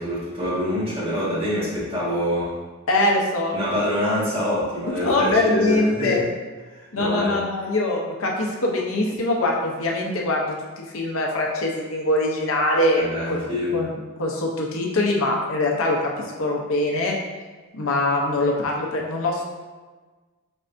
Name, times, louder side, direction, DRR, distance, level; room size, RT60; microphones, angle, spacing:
voice 1, 0.0-2.5 3.5-6.2 6.7-7.4 13.0-13.8, left 1 dB, 25° right, -9 dB, 1.5 m, -25 dB
voice 2, 2.9-3.5 5.0-6.2 6.9-13.4 13.7-13.9 14.2-16.1 16.4-17.1 17.7-19.5, left 2 dB, 75° left, -1 dB, 0.7 m, -23 dB
5.2 x 3.3 x 2.6 m, 1.3 s
head